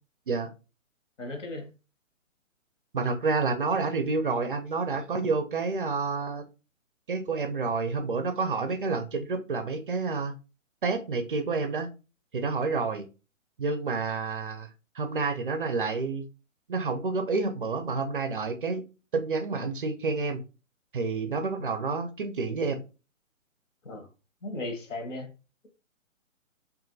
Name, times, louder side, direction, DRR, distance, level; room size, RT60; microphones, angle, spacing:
voice 1, 1.2-1.7 23.8-24.1 24.4-25.3, left 2 dB, 65° left, 1.1 m, -36 dB
voice 2, 2.9-6.4 7.1-10.3 10.8-11.9 12.3-13.1 13.6-14.7 15.0-16.3 16.7-18.9 19.1-20.4 20.9-22.8, right 4 dB, 45° right, 0.4 m, -29 dB
2.8 x 2.6 x 2.6 m
hypercardioid pair, 145°, 40 cm